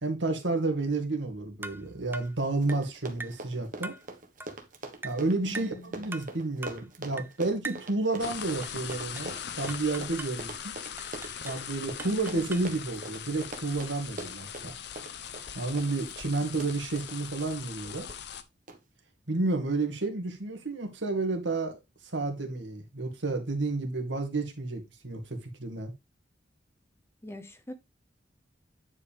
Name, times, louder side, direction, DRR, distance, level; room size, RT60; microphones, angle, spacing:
voice 1, 0.0-4.0 5.0-10.7 11.4-14.7 15.5-18.1 19.3-21.8 22.1-25.9, right 3 dB, 75° right, 2.1 m, -31 dB
sound 1, 1.6-1.9 2.1-2.4 2.7-2.9 3.2-3.4 3.8-4.1 4.4-4.6 5.0-5.2 5.5-5.8 6.1-6.3 6.6-6.8 7.2-7.4 7.6-7.9 8.6-9.3 9.7-10.4 11.0-11.6 12.0-12.8, right 3 dB, 10° right, 0.4 m, -42 dB
Run, 2.2-2.3 2.5-17.5 18.1-18.4 18.7-18.8, right 2 dB, 45° right, 1.4 m, -43 dB
voice 2, 5.4-6.1 12.2-12.4 27.2-27.7, left 1 dB, 15° left, 0.7 m, -42 dB
sound 2, 8.2-18.4, left 8 dB, 60° left, 0.8 m, -41 dB
9.6 x 5.1 x 3.5 m
head